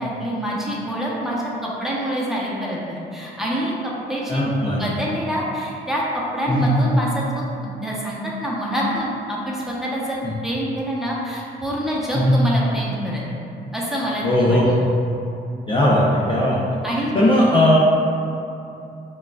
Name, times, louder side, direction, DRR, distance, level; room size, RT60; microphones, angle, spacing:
voice 1, 0.0-13.2 13.7-14.6 16.8-17.1, equal, ahead, -6 dB, 1.0 m, -26 dB
voice 2, 4.3-4.8 6.5-6.7 10.2-10.3 12.1-12.4 14.2-14.7 15.7-16.6 17.1-17.8, left 1 dB, 25° left, -6 dB, 0.6 m, -18 dB
5.7 x 2.4 x 2.4 m, 2.7 s
supercardioid pair, 60°, 21 cm